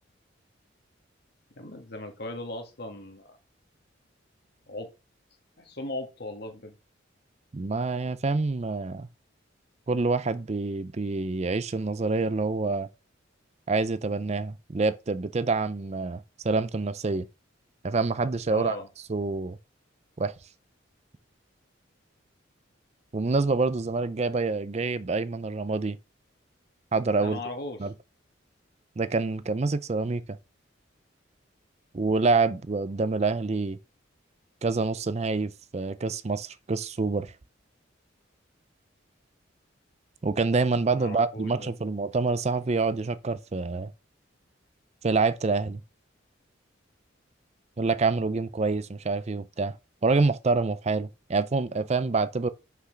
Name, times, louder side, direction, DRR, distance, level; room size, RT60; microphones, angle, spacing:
voice 1, 1.6-3.4 4.7-4.9 5.6-6.7 18.5-18.9 27.2-27.8 40.9-41.7, left 2 dB, 55° left, 1.9 m, -37 dB
voice 2, 7.5-9.1 9.9-12.9 13.7-17.3 17.8-18.8 19.1-19.6 20.2-20.3 23.1-26.0 26.9-27.4 27.8-27.9 29.0-30.4 31.9-33.8 34.6-37.3 40.2-43.9 45.0-45.8 47.8-49.8 50.0-52.5, right 3 dB, 35° right, 0.5 m, -27 dB
6.0 x 5.7 x 5.7 m
head